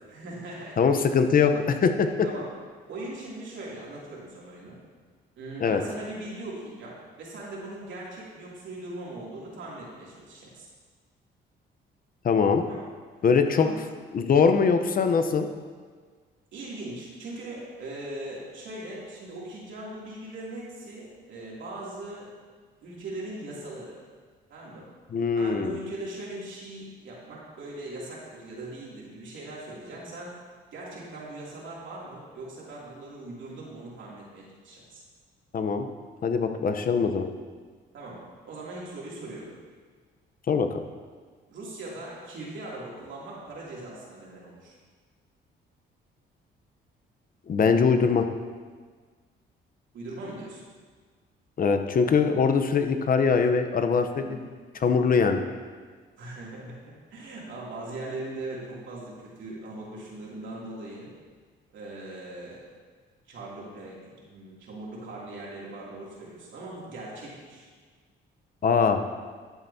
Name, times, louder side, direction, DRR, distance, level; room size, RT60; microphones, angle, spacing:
voice 1, 0.1-0.8 1.4-1.5 2.2-2.5 2.9-4.8 5.4-10.7 12.6-12.9 13.6-13.8 16.5-22.3 22.8-24.0 24.5-24.9 25.4-30.3 30.7-35.0 37.9-39.5 41.5-44.7 49.9-50.6 54.2-54.5 56.2-61.1 61.7-62.6 63.3-67.7, right 2 dB, 70° right, -5 dB, 2.8 m, -40 dB
voice 2, 0.8-2.1 5.6-5.8 12.2-12.6 13.2-13.7 14.1-15.5 25.1-25.8 35.5-35.9 36.2-37.3 40.5-40.8 47.5-48.3 51.6-54.2 54.8-55.4 68.6-69.0, left 5 dB, 45° left, 7 dB, 0.8 m, -22 dB
12.0 x 7.9 x 2.8 m, 1.5 s
cardioid pair, 90°, 20 cm